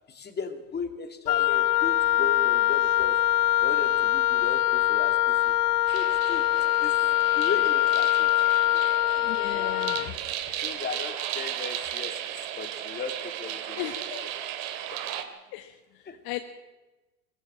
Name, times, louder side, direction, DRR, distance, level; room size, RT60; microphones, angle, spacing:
voice 1, 0.1-3.2 3.6-5.5 5.9-6.5 6.8-7.0 7.3-8.3 8.7-8.9 9.5-9.9 10.6-12.3 12.6-13.8 14.9-15.0 16.1-16.2, left 5 dB, 20° left, 7 dB, 2.6 m, -36 dB
Wind instrument woodwind instrument, 1.3-10.1, left 14 dB, 80° left, 0.7 m, -23 dB
sound 1, 5.9-15.2, right 11 dB, 60° right, 2.6 m, -35 dB
voice 2, 9.1-10.1 13.8-14.2 15.5-16.4, left 15 dB, 50° left, 7 dB, 1.7 m, -37 dB
20.5 x 15.0 x 8.8 m, 1.1 s
hypercardioid pair, 90°, 46 cm